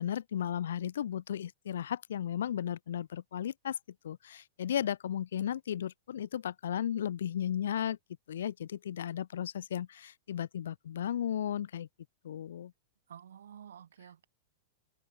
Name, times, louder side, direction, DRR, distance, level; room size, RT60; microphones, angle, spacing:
voice 1, 0.0-3.8 4.0-8.0 8.3-11.9 12.2-12.7, left 10 dB, 80° left, 0.8 m, -35 dB
voice 2, 13.1-14.3, right 9 dB, 80° right, 2.6 m, -51 dB
hypercardioid pair, 115°, 0 cm